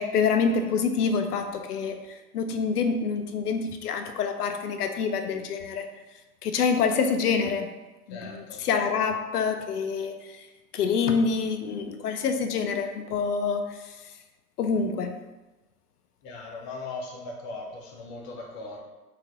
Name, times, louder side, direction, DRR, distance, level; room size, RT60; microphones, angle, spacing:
voice 1, 0.0-5.9 6.4-7.7 8.1-10.5 10.7-14.1 14.6-15.2, left 5 dB, 80° left, 7 dB, 0.5 m, -27 dB
voice 2, 8.1-8.6 16.2-18.8, left 3 dB, 30° left, -1 dB, 0.7 m, -39 dB
3.1 x 2.8 x 2.5 m, 1.1 s
figure-of-eight pair, 105°, 46 cm